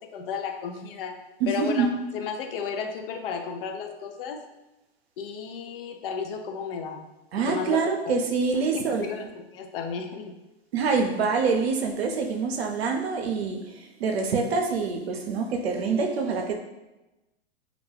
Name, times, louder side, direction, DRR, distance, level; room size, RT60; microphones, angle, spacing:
voice 1, 0.1-1.1 1.5-1.9 2.1-4.4 5.2-7.1 7.4-8.1 8.6-9.2 9.5-10.3, left 6 dB, 60° left, 4 dB, 0.5 m, -33 dB
voice 2, 1.4-1.9 7.3-9.1 10.7-16.5, right 4 dB, 70° right, 3 dB, 0.6 m, -26 dB
2.4 x 2.2 x 3.2 m, 1.0 s
hypercardioid pair, 105°, 32 cm